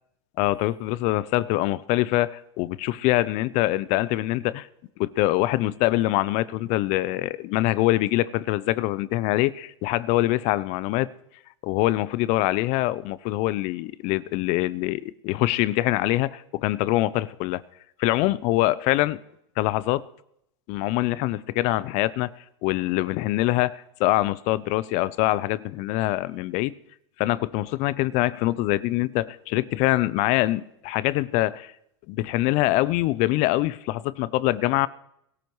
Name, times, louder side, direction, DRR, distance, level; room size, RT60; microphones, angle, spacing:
voice 1, 0.4-4.7 5.0-11.1 11.6-17.6 18.0-19.2 19.6-20.0 20.7-22.3 22.6-26.7 27.2-31.7 32.1-34.9, left 17 dB, 55° left, 0.6 m, -24 dB
22.5 x 13.5 x 3.2 m
hypercardioid pair, 105°, 14 cm